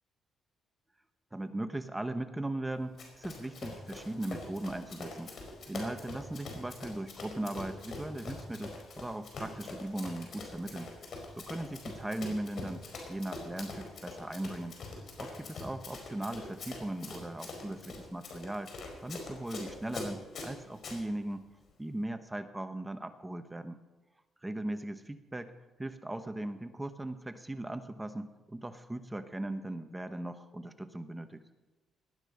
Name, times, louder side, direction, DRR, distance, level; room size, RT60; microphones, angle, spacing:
voice 1, 1.3-5.3 5.7-10.9 11.4-14.7 15.2-18.7 19.0-21.4 21.8-23.8 24.4-25.5 25.8-31.4, right 1 dB, 10° right, 9 dB, 1.1 m, -38 dB
Run, 3.0-21.0, left 3 dB, 60° left, 4.7 m, -44 dB
18.5 x 12.5 x 5.4 m, 1.2 s
cardioid pair, 90°, 0 cm